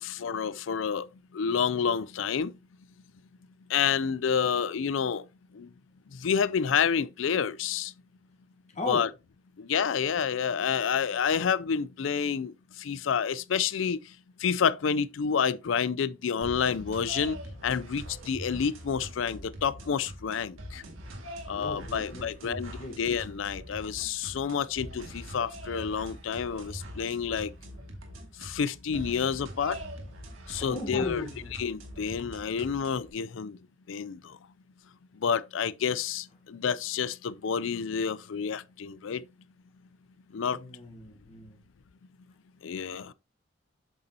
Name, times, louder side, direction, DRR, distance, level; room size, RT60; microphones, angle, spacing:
voice 1, 0.0-1.1 1.3-2.5 3.7-5.3 5.5-5.7 6.1-7.9 8.9-9.1 9.6-14.0 14.4-20.8 21.5-27.5 28.4-29.8 30.5-33.6 33.9-34.4 35.2-39.2 40.3-40.6 42.6-43.1, left 7 dB, 70° left, 0.4 m, -29 dB
voice 2, 8.7-9.1 21.5-23.0 30.6-31.5 40.5-41.6, left 1 dB, 35° left, 1.2 m, -38 dB
sound 1, 16.4-33.1, equal, 85° right, 2.0 m, -43 dB
8.2 x 6.7 x 2.8 m
head